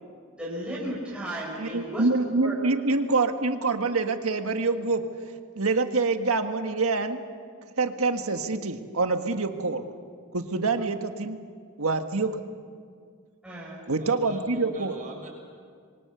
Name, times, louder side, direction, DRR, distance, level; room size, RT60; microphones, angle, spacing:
voice 1, 0.4-2.1 2.4-2.7 13.4-13.8, right 1 dB, 5° right, -7 dB, 5.6 m, -34 dB
voice 2, 1.5-5.0 5.5-7.2 7.7-9.9 10.3-11.4 11.8-12.4 13.9-15.0, right 3 dB, 75° right, 6 dB, 1.7 m, -26 dB
voice 3, 13.8-15.3, right 1 dB, 40° right, 0 dB, 6.7 m, -42 dB
27.0 x 24.0 x 7.0 m, 2.1 s
head